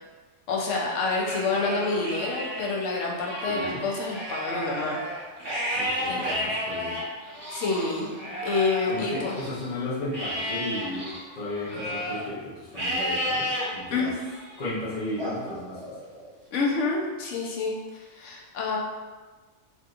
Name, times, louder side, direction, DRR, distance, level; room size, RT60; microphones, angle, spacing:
voice 1, 0.5-5.0 6.1-6.2 6.7-6.8 7.5-8.1 8.4-9.4 13.9-14.1 16.5-18.8, left 3 dB, 85° left, -2 dB, 1.0 m, -28 dB
Livestock farm animals working animals, 1.1-2.7 3.1-9.7 10.1-12.2 12.7-13.7 14.2-14.6 15.2-16.3, equal, 65° right, 1.4 m, -32 dB
voice 2, 3.5-3.8 5.7-7.0 8.9-13.5 13.7-14.1 14.6-15.8, left 1 dB, 40° left, -11 dB, 0.8 m, -34 dB
3.4 x 2.7 x 2.4 m, 1.3 s
omnidirectional pair, 1.2 m